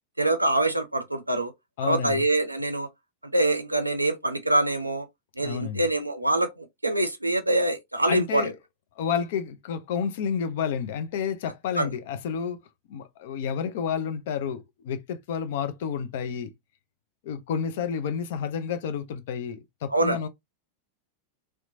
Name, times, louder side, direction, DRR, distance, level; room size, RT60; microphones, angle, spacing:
voice 1, 0.2-1.5 1.8-2.9 3.2-5.1 5.4-8.5 11.8-11.9 19.9-20.2, right 2 dB, 85° right, 0.5 m, -25 dB
voice 2, 1.8-2.2 5.4-5.8 8.1-8.6 9.0-12.6 12.9-16.5 17.2-20.3, left 7 dB, 55° left, 0.4 m, -30 dB
2.8 x 2.2 x 2.5 m
figure-of-eight pair, 90°, 0 cm